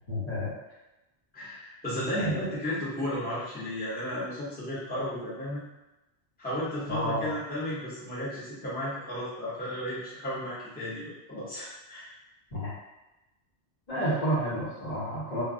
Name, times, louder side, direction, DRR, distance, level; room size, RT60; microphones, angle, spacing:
voice 1, 0.1-0.5 2.1-2.5 6.9-7.4 12.5-12.7 13.9-15.4, equal, 40° left, -9 dB, 0.8 m, -30 dB
voice 2, 1.3-5.6 6.4-12.1, equal, 10° left, -9 dB, 0.7 m, -34 dB
2.2 x 2.1 x 3.6 m, 1.0 s
omnidirectional pair, 1.1 m